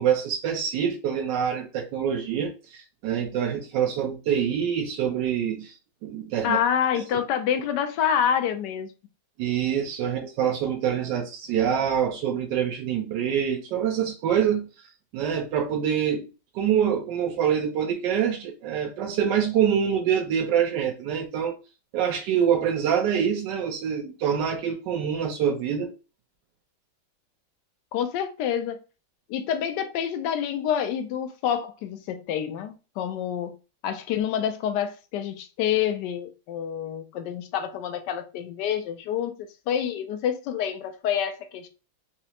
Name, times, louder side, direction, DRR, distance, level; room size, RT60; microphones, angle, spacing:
voice 1, 0.0-5.8 6.0-6.6 6.9-7.0 9.4-16.3 16.5-21.6 21.9-25.9, right 8 dB, 75° right, 1.1 m, -25 dB
voice 2, 6.4-8.9 27.9-28.8 29.3-33.5 33.8-39.4 39.7-41.7, left 9 dB, 75° left, 1.0 m, -27 dB
4.1 x 2.3 x 2.8 m
omnidirectional pair, 2.2 m